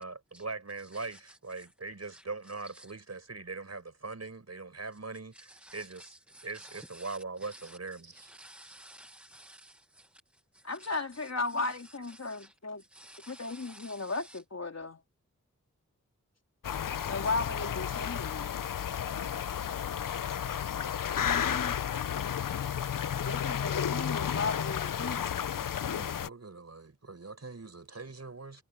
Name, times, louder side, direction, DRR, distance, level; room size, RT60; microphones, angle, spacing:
voice 1, 0.0-6.1 6.4-8.3 8.6-8.7 25.4-28.6, right 3 dB, 55° right, 5.0 m, -42 dB
voice 2, 5.3-7.8 8.1-10.1 10.5-10.9 11.2-11.3 11.7-11.8 12.1-12.5 12.9-14.4, right 1 dB, 5° right, 1.0 m, -53 dB
voice 3, 10.6-12.8 13.3-15.0 17.1-18.6 21.1-21.8 23.1-25.4, left 3 dB, 55° left, 3.6 m, -36 dB
sound 1, 16.6-26.3, left 9 dB, 85° left, 0.6 m, -32 dB
wide cardioid pair, 50°, 32 cm